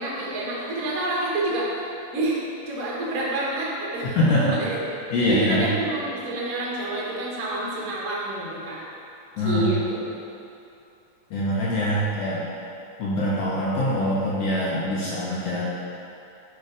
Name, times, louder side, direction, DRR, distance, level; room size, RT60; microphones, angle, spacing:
voice 1, 0.0-1.7 2.1-2.4 2.7-4.1 4.6-4.8 5.2-8.8 9.4-10.1, right 2 dB, 80° right, -6 dB, 0.7 m, -28 dB
voice 2, 4.0-4.6 5.1-5.7 9.4-9.7 11.3-12.5 13.0-15.7, left 1 dB, 70° left, -7 dB, 1.6 m, -23 dB
9.3 x 3.2 x 3.8 m, 2.6 s
omnidirectional pair, 3.5 m